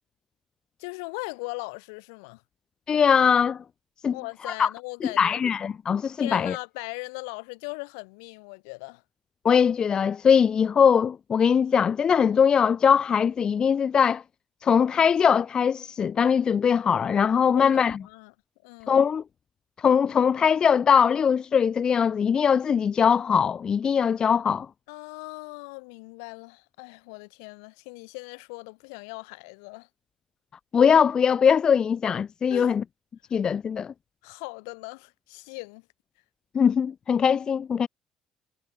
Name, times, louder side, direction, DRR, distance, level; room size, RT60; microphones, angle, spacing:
voice 1, 0.8-2.4 4.1-5.4 6.2-9.0 17.6-18.3 18.6-19.0 24.9-29.9 32.5-32.8 34.2-35.9, left 32 dB, 70° left, 2.4 m, -39 dB
voice 2, 2.9-3.6 4.0-4.2 4.6-4.7 5.2-6.6 9.4-14.2 14.6-18.0 18.9-19.2 19.8-24.7 30.7-32.8 33.3-33.9 36.5-37.9, left 7 dB, 40° left, 0.5 m, -21 dB
figure-of-eight pair, 50°, 2 cm